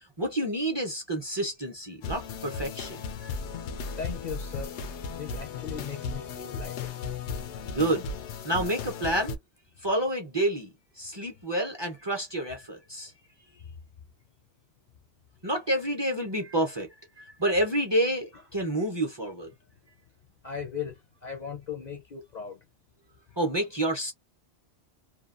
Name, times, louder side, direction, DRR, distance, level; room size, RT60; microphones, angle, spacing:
voice 1, 0.2-3.3 7.6-8.1 8.4-9.3 9.8-10.7 11.0-13.1 15.4-16.9 17.2-19.5 23.4-24.1, right 1 dB, 30° right, 0.6 m, -29 dB
sound 1, 2.0-9.4, left 5 dB, 80° left, 0.9 m, -36 dB
voice 2, 4.0-4.8 5.1-6.9 13.4-13.8 20.4-22.6, left 7 dB, 50° left, 0.6 m, -38 dB
2.8 x 2.2 x 2.4 m
omnidirectional pair, 1.2 m